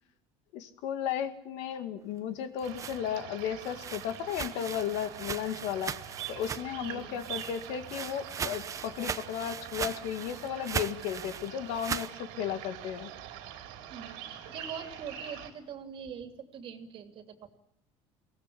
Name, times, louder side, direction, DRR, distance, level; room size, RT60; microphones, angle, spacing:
voice 1, 0.5-6.0 6.3-13.1, left 9 dB, 75° left, 8 dB, 2.2 m, -34 dB
sound 1, 2.4-6.9 7.2-12.1, right 7 dB, 25° right, 0.9 m, -39 dB
sound 2, 2.6-15.5, right 10 dB, 90° right, 3.7 m, -44 dB
voice 2, 6.8-7.4 13.9-17.5, right 7 dB, 50° right, 6 dB, 2.9 m, -43 dB
23.0 x 18.5 x 8.5 m, 0.74 s
cardioid pair, 125°, 12 cm